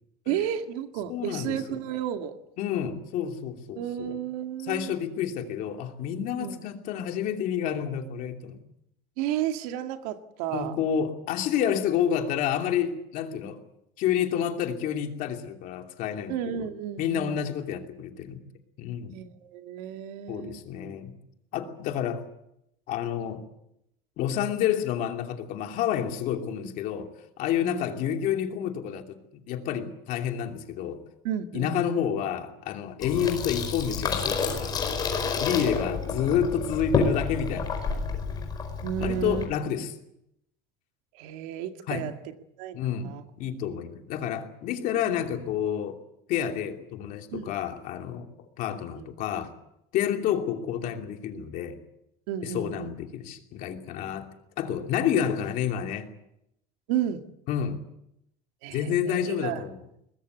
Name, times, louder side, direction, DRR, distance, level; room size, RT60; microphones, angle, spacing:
voice 1, 0.3-2.4 3.8-4.9 6.3-6.5 9.2-10.7 16.3-17.4 19.1-20.6 27.6-27.9 31.2-32.0 33.0-33.1 38.8-39.4 41.1-42.1 42.6-42.8 43.0-43.2 47.3-47.5 49.0-49.1 52.3-52.9 56.9-57.2 58.6-59.6, right 10 dB, 80° right, 6 dB, 2.1 m, -32 dB
voice 2, 1.1-1.8 2.6-4.2 4.6-8.6 10.5-13.6 14.0-16.7 17.0-18.4 18.8-19.2 20.3-21.1 21.5-22.2 22.9-23.4 24.2-27.1 27.4-31.0 31.5-34.8 35.4-38.1 39.0-39.9 41.9-42.0 42.7-43.1 43.4-46.0 46.3-48.3 48.6-49.5 49.9-51.8 52.4-54.3 54.6-56.1 57.5-57.8 58.7-59.8, left 9 dB, 45° left, 4 dB, 2.9 m, -29 dB
Water tap faucet / Sink (filling or washing), 33.0-39.5, left 5 dB, 20° left, 5.0 m, -29 dB
22.5 x 20.5 x 8.2 m, 0.81 s
cardioid pair, 175°, 19 cm